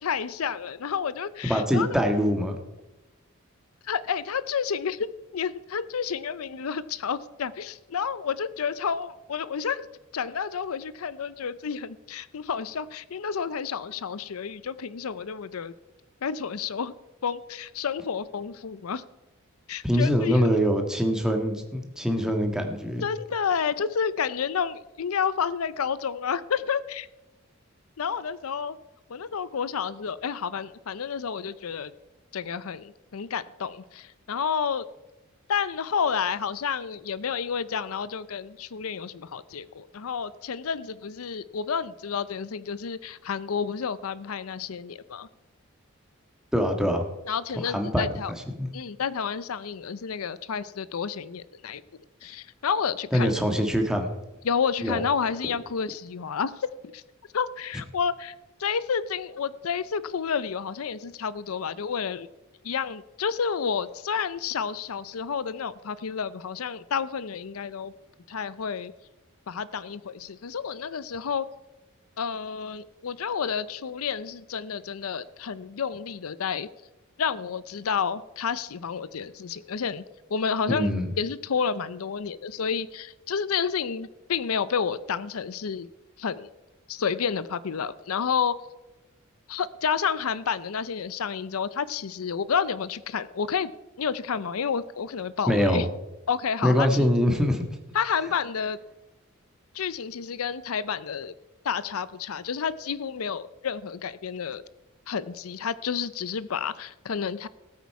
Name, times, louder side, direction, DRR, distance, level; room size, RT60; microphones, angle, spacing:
voice 1, 0.0-2.0 3.8-5.1 5.3-9.9 10.1-15.7 16.2-16.9 17.2-19.0 19.7-20.4 23.0-27.1 28.0-28.8 29.1-31.9 32.3-34.8 35.5-45.3 47.3-48.3 48.7-51.8 52.2-53.3 54.4-56.7 56.9-57.0 57.3-58.3 58.6-62.3 62.6-67.9 68.3-68.9 69.5-71.5 72.2-76.7 77.2-80.0 80.3-80.9 81.2-85.9 86.2-86.5 86.9-88.6 89.5-93.7 94.0-95.9 96.3-97.1 97.9-98.8 99.7-101.3 101.6-104.7 105.1-107.5, left 6 dB, 85° left, 17 dB, 0.5 m, -30 dB
voice 2, 1.4-2.6 19.8-23.0 46.5-47.0 47.6-48.1 48.5-48.7 53.1-54.2 54.8-55.0 80.7-81.1 95.5-95.8 96.6-97.7, equal, 5° right, 4 dB, 1.5 m, -24 dB
18.5 x 8.3 x 4.7 m, 1.0 s
head